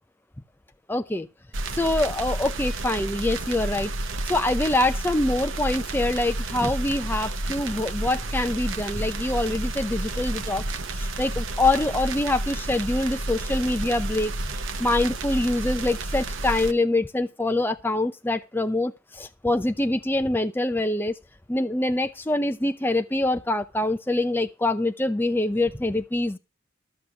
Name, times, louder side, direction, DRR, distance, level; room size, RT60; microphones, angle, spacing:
voice 1, 0.9-1.3 1.7-3.9 4.2-10.7 10.9-14.3 14.8-21.1 21.5-26.4, left 2 dB, 10° left, 0.5 m, -25 dB
sound 1, 1.5-16.7, right 2 dB, 70° right, 1.1 m, -31 dB
13.0 x 6.7 x 5.9 m
head